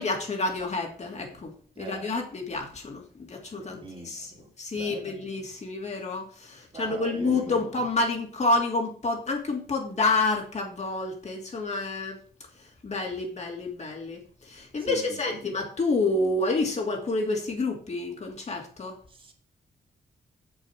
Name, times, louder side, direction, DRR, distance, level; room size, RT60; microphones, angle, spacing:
voice 1, 0.0-3.8 4.0-4.3 4.6-12.2 12.6-19.0, left 3 dB, 40° left, 2.7 m, -29 dB
voice 2, 1.8-2.3 3.6-5.1 6.7-7.6 14.8-15.4 19.1-19.3, right 3 dB, 30° right, 2.3 m, -42 dB
7.7 x 7.2 x 6.0 m
wide cardioid pair, 125°, 17 cm